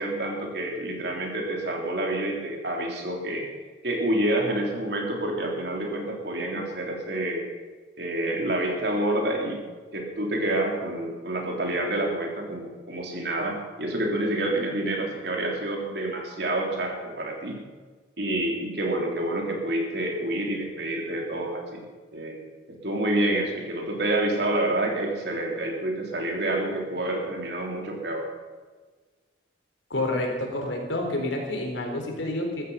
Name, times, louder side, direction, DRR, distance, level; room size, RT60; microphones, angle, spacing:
voice 1, 0.0-3.5 3.8-7.4 8.0-9.6 9.9-17.6 18.2-21.8 22.1-22.4 22.7-28.3, right 1 dB, 60° right, 0 dB, 3.6 m, -28 dB
voice 2, 29.9-32.6, left 1 dB, 85° left, 2 dB, 4.0 m, -28 dB
15.0 x 14.0 x 5.7 m, 1.4 s
head